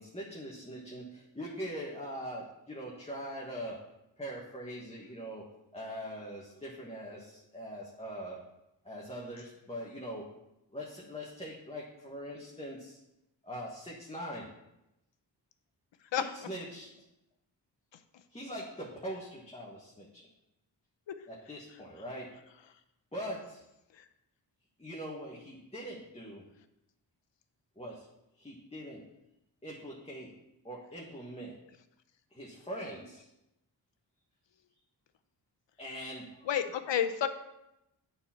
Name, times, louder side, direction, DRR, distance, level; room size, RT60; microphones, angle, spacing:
voice 1, 0.0-3.8 4.2-5.4 5.7-8.4 8.8-10.3 10.7-13.0 13.4-14.5 16.2-16.9 18.3-20.3 21.3-22.4 23.1-23.6 24.8-26.5 27.8-28.1 28.4-29.0 29.6-30.4 30.6-31.6 32.3-33.3 35.8-36.5, equal, 15° left, -4 dB, 1.4 m, -42 dB
voice 2, 36.5-37.3, left 9 dB, 75° left, 10 dB, 0.8 m, -30 dB
8.6 x 4.4 x 5.7 m, 0.89 s
cardioid pair, 80°, 44 cm